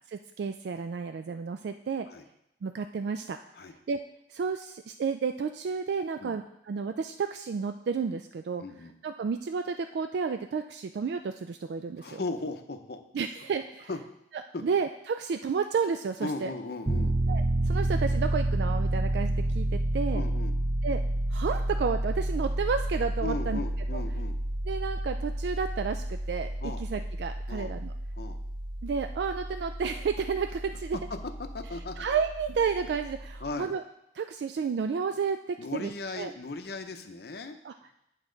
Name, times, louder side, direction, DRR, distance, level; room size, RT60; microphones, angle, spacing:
voice 1, 0.1-2.1 2.6-3.4 3.9-4.0 4.3-8.6 9.0-12.2 13.1-13.9 14.6-16.5 17.3-20.2 20.8-21.0 21.3-23.6 23.9-24.0 24.7-27.9 28.8-31.0 32.0-33.8 34.1-36.3 37.6-37.9, right 5 dB, 65° right, 7 dB, 0.3 m, -31 dB
voice 2, 8.6-8.9 12.0-13.0 13.9-14.0 14.5-14.6 16.2-17.1 20.1-20.5 23.2-24.4 26.6-26.8 27.5-27.7 28.1-28.4 31.5-32.1 33.4-33.7 35.6-37.6, left 3 dB, 60° left, 7 dB, 0.7 m, -37 dB
Piano, 16.9-33.5, right 1 dB, 25° right, 0.7 m, -30 dB
8.4 x 5.9 x 3.9 m, 0.83 s
head